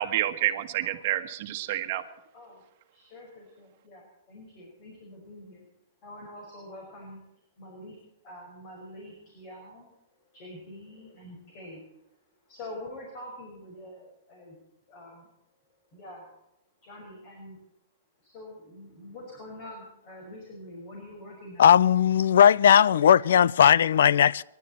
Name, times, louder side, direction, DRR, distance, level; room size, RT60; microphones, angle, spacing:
voice 1, 0.0-2.0, right 13 dB, 45° right, 1.4 m, -28 dB
voice 2, 2.9-5.7 6.0-7.2 7.6-8.0 8.2-9.9 10.3-11.9 12.4-14.6 14.9-15.3 15.9-16.3 16.8-17.6 18.2-21.8 24.3-24.4, left 1 dB, 35° left, 5.6 m, -45 dB
voice 3, 21.6-24.4, left 9 dB, 80° left, 0.5 m, -18 dB
27.5 x 11.5 x 4.4 m
hypercardioid pair, 160°, 0 cm